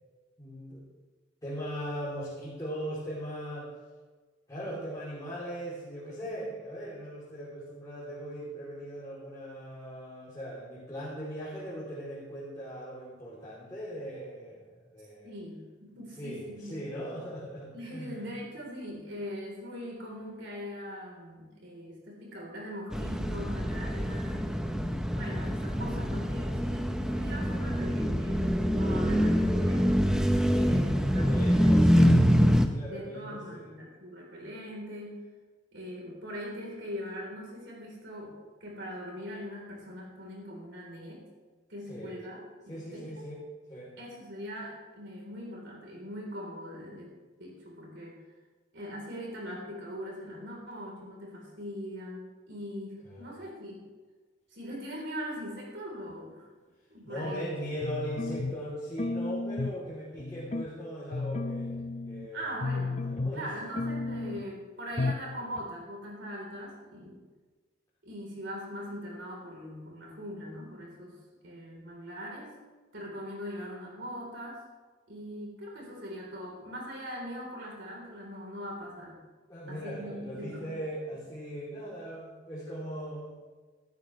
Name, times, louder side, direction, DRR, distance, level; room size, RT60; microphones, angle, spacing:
voice 1, 0.4-0.9 1.4-3.7 4.5-15.3 16.2-18.2 27.5-27.6 30.8-33.6 41.9-42.1 42.7-43.4 43.7-43.9 53.0-53.3 57.0-62.5 63.1-63.5 79.5-83.4, equal, 20° left, -8 dB, 3.1 m, -39 dB
voice 2, 15.2-16.8 17.7-24.8 25.1-30.1 30.5-32.1 32.9-35.2 35.7-38.3 38.6-41.2 41.7-43.3 44.0-47.1 47.4-48.2 48.7-53.8 54.5-56.5 56.9-57.6 62.3-67.2 68.0-72.5 72.9-74.6 75.1-79.2 79.7-80.7, equal, 65° right, -1 dB, 3.7 m, -41 dB
sound 1, 22.9-32.7, equal, 5° right, 0.8 m, -25 dB
sound 2, 57.8-58.7 59.0-59.8 60.2-60.7 61.1-62.3 62.6-63.5 63.8-64.5 65.0-65.3 65.6-65.7, left 3 dB, 35° left, 0.6 m, -33 dB
16.5 x 13.0 x 3.2 m, 1.3 s
head